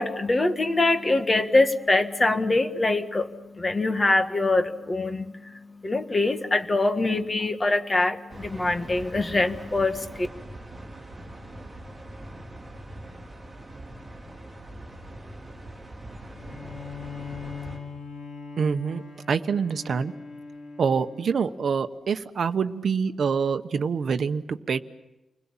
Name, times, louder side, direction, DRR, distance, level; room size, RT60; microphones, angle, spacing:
voice 1, 0.0-3.3 3.5-10.3, left 2 dB, 20° left, 7 dB, 1.6 m, -24 dB
sound 1, 8.3-17.8, right 1 dB, 10° right, 5.3 m, -42 dB
Bowed string instrument, 16.3-21.8, left 5 dB, 60° left, 4.6 m, -41 dB
voice 2, 18.6-19.0 19.3-20.1 20.8-24.8, right 6 dB, 55° right, 9 dB, 1.1 m, -26 dB
30.0 x 21.0 x 7.4 m, 0.99 s
wide cardioid pair, 175°, 0 cm